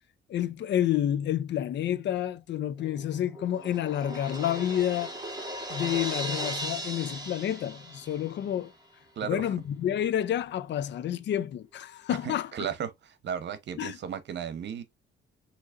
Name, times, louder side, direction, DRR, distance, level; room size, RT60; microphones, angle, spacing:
voice 1, 0.3-5.1 5.7-8.7 9.2-12.5 13.8-14.0, left 11 dB, 65° left, 0.6 m, -29 dB
Crash cymbal, 2.8-8.5, right 1 dB, 20° right, 1.7 m, -37 dB
voice 2, 9.2-9.5 12.1-14.8, right 8 dB, 60° right, 1.0 m, -35 dB
6.4 x 3.1 x 2.5 m
cardioid pair, 90°, 20 cm